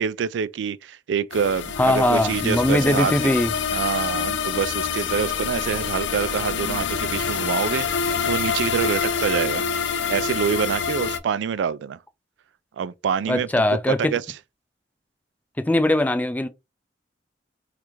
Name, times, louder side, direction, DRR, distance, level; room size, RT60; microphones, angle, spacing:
voice 1, 0.0-3.3 3.7-9.6 10.1-12.0 12.8-14.2, right 7 dB, 75° right, 0.3 m, -26 dB
sound 1, 1.3-11.2, left 6 dB, 80° left, 0.5 m, -26 dB
voice 2, 1.8-3.5 13.3-14.1 15.6-16.5, left 1 dB, 10° left, 0.3 m, -20 dB
3.3 x 2.4 x 3.0 m
head